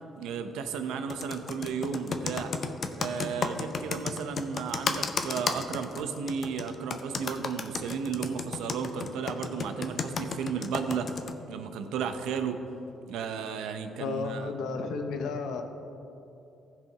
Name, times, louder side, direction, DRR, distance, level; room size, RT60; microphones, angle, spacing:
voice 1, 0.2-2.5 3.0-11.1 11.5-12.6 13.1-14.5, right 6 dB, 90° right, 8 dB, 0.7 m, -34 dB
Computer keyboard, 1.1-11.3, left 5 dB, 50° left, 0.7 m, -32 dB
voice 2, 14.0-15.6, left 4 dB, 80° left, 6 dB, 0.9 m, -32 dB
15.0 x 5.1 x 4.7 m, 2.9 s
cardioid pair, 90°, 0 cm